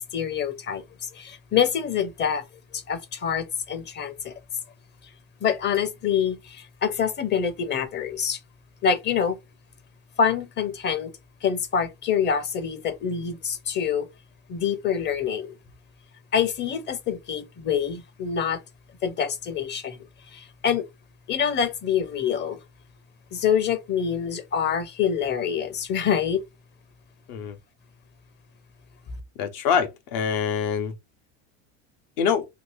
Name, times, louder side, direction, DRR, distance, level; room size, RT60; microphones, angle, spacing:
voice 1, 0.1-2.4 2.7-4.3 5.4-8.4 8.8-9.3 10.2-11.1 11.4-14.1 14.5-15.5 16.3-18.6 19.0-20.0 20.3-20.8 21.3-22.6 23.3-26.4, left 7 dB, 30° left, 0.6 m, -26 dB
voice 2, 29.4-30.9 32.2-32.5, left 7 dB, 65° left, 0.8 m, -25 dB
2.8 x 2.5 x 3.2 m
supercardioid pair, 120°, 37 cm